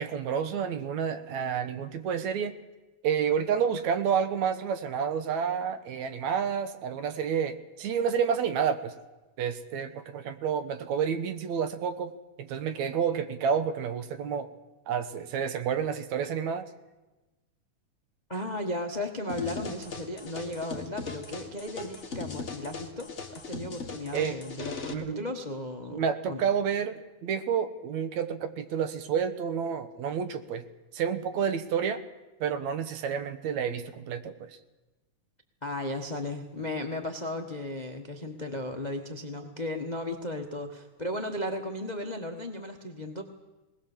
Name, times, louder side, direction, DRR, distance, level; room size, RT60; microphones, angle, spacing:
voice 1, 0.0-2.6 3.0-8.9 9.4-12.1 12.4-14.5 14.9-16.7 24.1-24.4 24.9-25.2 25.9-30.6 30.9-32.0 32.4-34.6, right 7 dB, 70° right, 10 dB, 2.4 m, -29 dB
voice 2, 18.3-26.4 35.6-43.2, left 1 dB, 65° left, 5 dB, 0.4 m, -35 dB
sound 1, 19.3-24.9, left 4 dB, 30° left, 1.5 m, -39 dB
20.5 x 19.5 x 7.3 m, 1.1 s
omnidirectional pair, 3.4 m